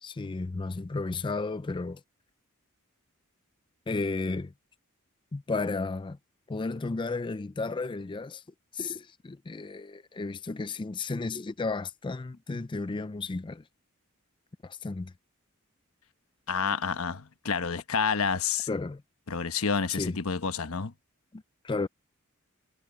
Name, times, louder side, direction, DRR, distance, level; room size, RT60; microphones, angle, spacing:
voice 1, 0.0-2.0 3.9-4.5 5.3-6.2 6.5-8.4 8.7-13.6 14.6-15.1 18.7-19.0 19.9-20.2 21.3-21.9, left 3 dB, 25° left, 0.4 m, -33 dB
voice 2, 16.5-18.7 19.3-20.9, left 5 dB, 85° left, 1.1 m, -29 dB
head